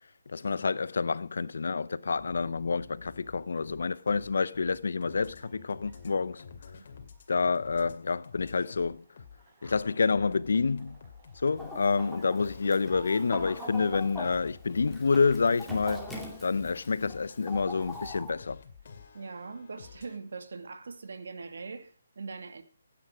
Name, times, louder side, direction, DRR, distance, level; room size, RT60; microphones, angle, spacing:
voice 1, 0.3-6.4 7.3-9.0 9.6-11.0 11.4-16.0 16.4-18.6, left 4 dB, 70° left, 0.7 m, -28 dB
sound 1, 2.2-7.9 8.2-11.7 12.4-20.2, left 6 dB, 55° left, 2.4 m, -49 dB
sound 2, 2.7-21.9, right 4 dB, 25° right, 5.8 m, -61 dB
Chicken rooster, 11.6-18.3, left 1 dB, ahead, 2.4 m, -42 dB
voice 2, 19.1-22.6, right 4 dB, 70° right, 2.1 m, -41 dB
15.5 x 9.6 x 4.9 m
hypercardioid pair, 155°, 0 cm